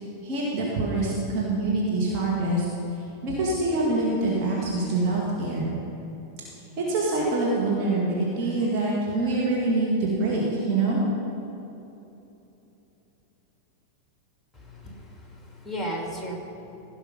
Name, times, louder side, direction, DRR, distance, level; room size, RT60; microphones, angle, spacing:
voice 1, 0.2-2.7 3.2-5.7 6.8-11.0, right 2 dB, 40° right, -5 dB, 2.1 m, -25 dB
voice 2, 14.5-16.4, equal, ahead, -2 dB, 2.5 m, -35 dB
16.5 x 5.7 x 5.3 m, 3.0 s
figure-of-eight pair, 90°, 0 cm